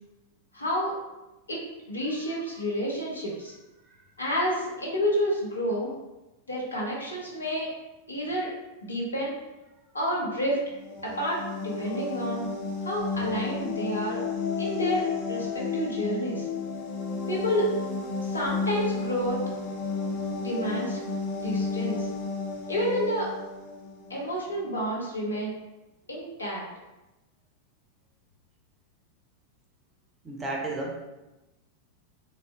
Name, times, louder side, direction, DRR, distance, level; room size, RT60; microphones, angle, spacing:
voice 1, 0.5-0.9 1.5-3.5 4.2-5.9 6.5-7.7 8.1-8.5 8.8-9.3 9.9-10.6 11.0-12.4 12.8-14.2 14.6-16.5 17.3-17.7 18.2-19.4 20.4-22.1 22.7-23.3 24.1-25.5 26.1-26.6, equal, 75° left, -3 dB, 0.7 m, -29 dB
sound 1, 10.7-24.3, left 4 dB, 40° left, 0.4 m, -32 dB
voice 2, 30.2-31.0, right 2 dB, 20° right, -1 dB, 0.6 m, -33 dB
3.5 x 2.1 x 2.4 m, 1.0 s
figure-of-eight pair, 90°, 0 cm